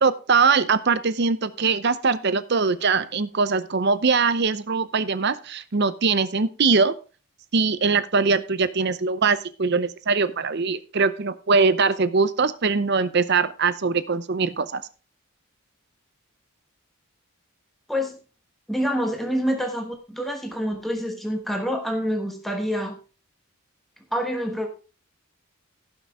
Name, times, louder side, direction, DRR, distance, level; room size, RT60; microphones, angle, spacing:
voice 1, 0.0-6.9 7.5-14.8, right 4 dB, 50° right, 14 dB, 0.6 m, -22 dB
voice 2, 18.7-23.0 24.1-24.7, equal, ahead, 3 dB, 1.2 m, -27 dB
16.0 x 5.8 x 3.5 m, 0.35 s
head